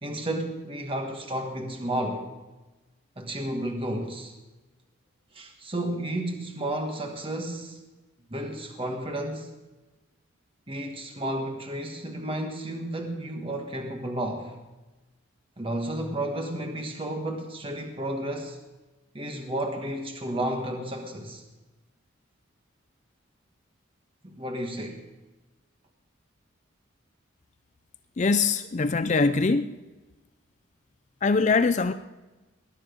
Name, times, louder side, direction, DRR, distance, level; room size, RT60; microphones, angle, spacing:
voice 1, 0.0-2.3 3.2-4.3 5.3-7.8 8.3-9.5 10.7-14.6 15.6-18.6 19.1-21.4 24.2-25.1, right 1 dB, 25° right, 1.4 m, -32 dB
voice 2, 28.2-29.7 31.2-31.9, left 4 dB, 35° left, 0.4 m, -22 dB
20.0 x 11.5 x 5.2 m
head